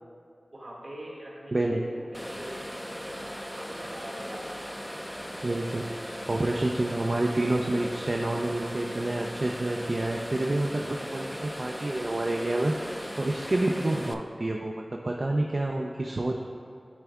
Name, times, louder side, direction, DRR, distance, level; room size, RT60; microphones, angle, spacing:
voice 1, 0.5-4.7, right 1 dB, 70° right, -4 dB, 1.6 m, -43 dB
sound 1, 2.1-14.1, equal, 5° left, 0.5 m, -38 dB
voice 2, 5.4-5.8 6.3-14.8 15.0-16.4, right 2 dB, 55° right, 0 dB, 0.4 m, -28 dB
10.5 x 3.5 x 3.5 m, 2.4 s
wide cardioid pair, 45°, 0 cm